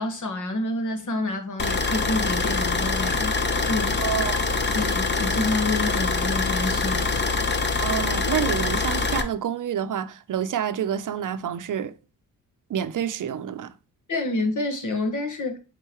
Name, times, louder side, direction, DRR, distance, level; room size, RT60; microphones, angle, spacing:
voice 1, 0.0-3.4 3.6-4.0 4.7-7.1 14.1-15.6, left 2 dB, 55° left, 1.5 m, -28 dB
sound 1, 1.6-9.2, left 3 dB, 30° left, 0.9 m, -24 dB
voice 2, 4.0-4.9 7.8-11.9 12.7-13.7, right 9 dB, 60° right, 0.7 m, -28 dB
8.1 x 3.9 x 3.0 m
cardioid pair, 70°, 35 cm